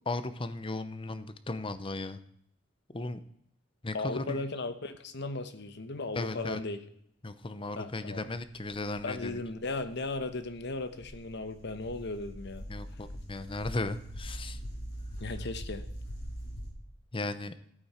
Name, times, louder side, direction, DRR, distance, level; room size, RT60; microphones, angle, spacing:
voice 1, 0.1-2.2 2.9-3.2 3.8-4.4 6.1-6.6 7.2-9.3 12.7-14.6 17.1-17.5, left 2 dB, 25° left, 12 dB, 0.8 m, -36 dB
voice 2, 3.9-6.8 7.8-8.2 9.0-12.7 15.2-15.8, left 3 dB, 60° left, 10 dB, 1.1 m, -36 dB
sound 1, 8.3-16.7, equal, 80° left, 4.4 m, -43 dB
14.5 x 8.7 x 4.4 m, 0.68 s
head